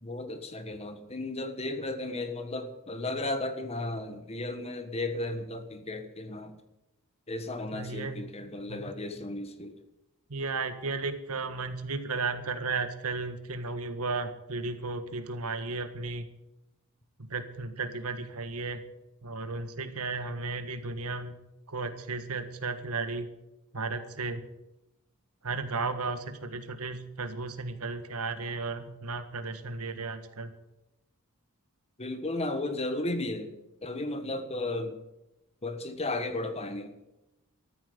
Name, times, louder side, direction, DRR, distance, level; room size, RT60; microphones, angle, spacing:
voice 1, 0.0-6.5 7.3-9.8 32.0-33.5 33.8-35.0 35.6-36.9, left 2 dB, 30° left, 8 dB, 1.4 m, -34 dB
voice 2, 7.7-8.2 8.7-9.0 10.3-16.2 17.2-18.8 19.2-21.3 21.7-23.3 23.7-24.4 25.4-30.5, right 3 dB, 80° right, 9 dB, 1.6 m, -34 dB
13.5 x 8.9 x 9.5 m, 0.91 s
head